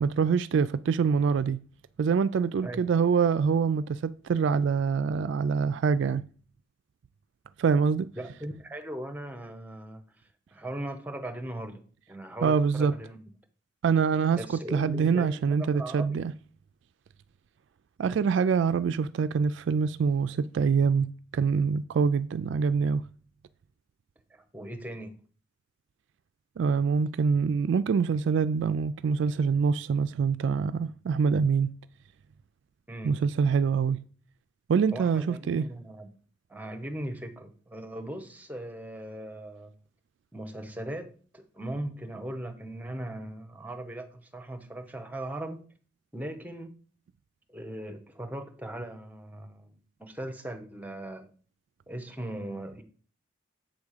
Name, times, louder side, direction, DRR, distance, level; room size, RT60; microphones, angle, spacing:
voice 1, 0.0-1.6 2.0-6.2 7.6-8.1 12.4-12.9 13.8-16.3 18.0-23.0 26.6-31.7 33.0-34.0 34.7-35.7, right 6 dB, 65° right, 0.3 m, -25 dB
voice 2, 8.2-10.0 10.5-11.8 12.1-13.3 14.4-16.2 24.3-25.1 32.9-33.2 34.9-36.1 36.5-39.7 40.3-45.6 46.1-46.7 47.5-49.7 50.0-51.3 51.9-52.8, right 1 dB, 10° right, 0.8 m, -39 dB
7.7 x 3.6 x 6.5 m
head